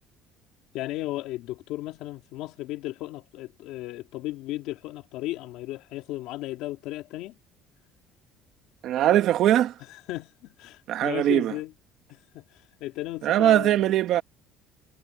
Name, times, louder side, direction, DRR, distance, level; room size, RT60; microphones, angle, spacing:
voice 1, 0.7-7.4 9.9-11.7 12.1-13.9, left 16 dB, 70° left, 2.9 m, -35 dB
voice 2, 8.8-9.7 10.9-11.5 13.2-14.2, right 12 dB, 55° right, 1.3 m, -21 dB
cardioid pair, 145°, 0 cm